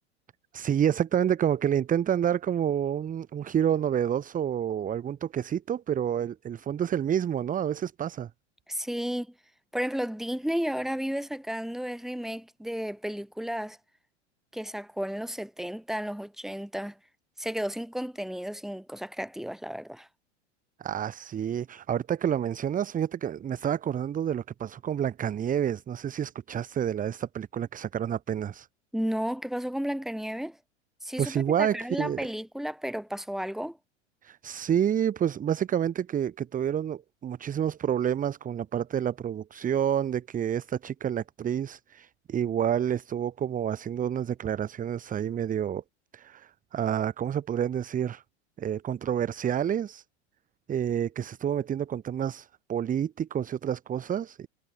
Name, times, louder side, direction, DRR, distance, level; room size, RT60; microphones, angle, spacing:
voice 1, 0.5-8.3 20.8-28.7 31.2-32.3 34.2-45.8 46.1-48.2 48.6-50.0 50.7-54.5, right 9 dB, 20° right, 1.2 m, -29 dB
voice 2, 8.7-9.3 9.7-13.8 14.5-17.0 17.4-20.1 28.9-30.6 31.0-33.8, equal, ahead, 4.4 m, -33 dB
hypercardioid pair, 90°, 36 cm